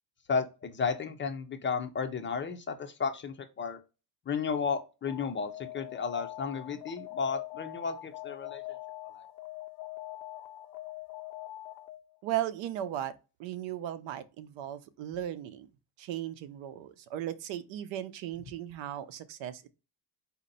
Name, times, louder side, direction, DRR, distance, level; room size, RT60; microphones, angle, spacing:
voice 1, 0.3-3.8 4.3-8.6 9.1-9.3, left 5 dB, 25° left, 0.5 m, -33 dB
Alarm, 5.1-12.2, left 16 dB, 80° left, 0.6 m, -43 dB
voice 2, 12.2-13.1 13.4-15.7 16.0-19.7, right 12 dB, 70° right, 0.7 m, -36 dB
4.3 x 2.7 x 3.9 m
cardioid pair, 135°, 47 cm